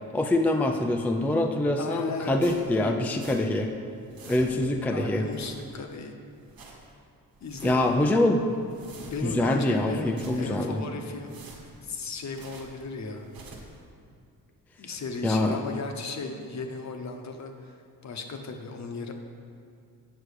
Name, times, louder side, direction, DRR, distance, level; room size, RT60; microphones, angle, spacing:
voice 1, 0.1-3.7 4.3-5.2 7.6-8.5 9.2-10.8 15.2-15.6, left 1 dB, 5° left, 4 dB, 0.4 m, -24 dB
voice 2, 1.8-3.0 4.2-6.1 7.4-7.8 9.1-11.5 11.8-13.3 14.8-19.1, left 3 dB, 50° left, 4 dB, 1.0 m, -36 dB
sound 1, 2.4-3.7 3.9-4.8 5.2-6.0 6.3-6.9 7.3-8.0 8.4-9.5 9.9-10.7 11.1-12.8 13.2-13.8, right 3 dB, 90° right, 1.5 m, -49 dB
8.4 x 6.2 x 6.5 m, 2.3 s
wide cardioid pair, 135°, 35 cm